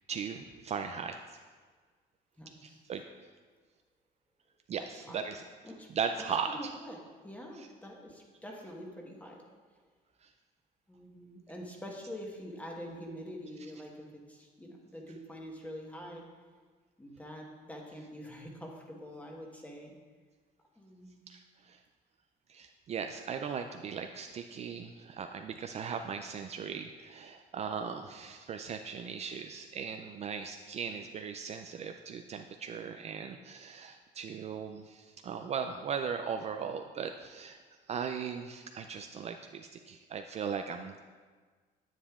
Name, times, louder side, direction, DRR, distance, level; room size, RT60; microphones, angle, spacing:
voice 1, 0.1-1.2 2.6-3.0 4.7-5.4 5.9-6.7 7.6-7.7 10.2-10.3 21.3-21.8 22.5-37.6 37.9-41.0, right 6 dB, 40° right, 6 dB, 0.3 m, -38 dB
voice 2, 2.4-2.8 4.8-5.3 5.6-5.9 6.5-9.4 10.9-16.3 17.0-19.9 20.8-21.1, equal, 10° left, -1 dB, 1.3 m, -45 dB
9.8 x 7.4 x 2.4 m, 1.5 s
cardioid pair, 110°, 17 cm